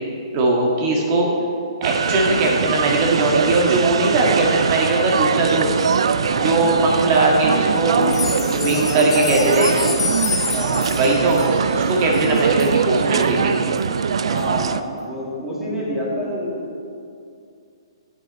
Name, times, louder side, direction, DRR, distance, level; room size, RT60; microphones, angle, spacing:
voice 1, 0.3-1.3 1.8-5.8 6.3-8.0 8.6-9.7 10.9-11.4 11.7-13.5, right 2 dB, 35° right, -1 dB, 1.9 m, -19 dB
sound 1, 1.8-14.8, right 6 dB, 70° right, 0.4 m, -22 dB
voice 2, 6.2-6.8 7.8-10.0 10.5-10.9 14.2-16.7, left 1 dB, 5° right, -8 dB, 2.7 m, -28 dB
sound 2, 8.0-12.8 13.2-13.3 13.8-13.9 14.4-14.5, left 5 dB, 65° left, 1.3 m, -28 dB
11.0 x 8.0 x 4.2 m, 2.4 s
hypercardioid pair, 145°, 3 cm